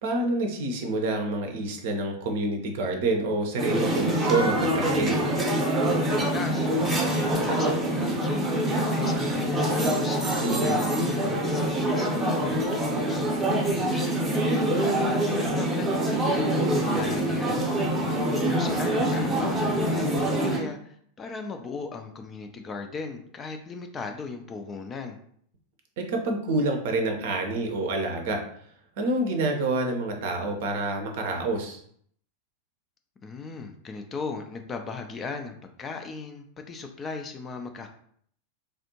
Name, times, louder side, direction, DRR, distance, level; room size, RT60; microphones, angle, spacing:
voice 1, 0.0-5.2 10.4-10.8 26.0-28.4 29.0-31.8, right 2 dB, 55° right, 3 dB, 0.6 m, -27 dB
sound 1, 3.6-20.6, right 1 dB, 20° right, 0.8 m, -25 dB
voice 2, 6.0-10.2 10.6-12.1 12.5-14.1 14.8-17.7 18.3-25.2 33.2-37.9, left 4 dB, 20° left, 5 dB, 0.4 m, -38 dB
3.4 x 2.5 x 2.8 m, 0.63 s
figure-of-eight pair, 90°, 0 cm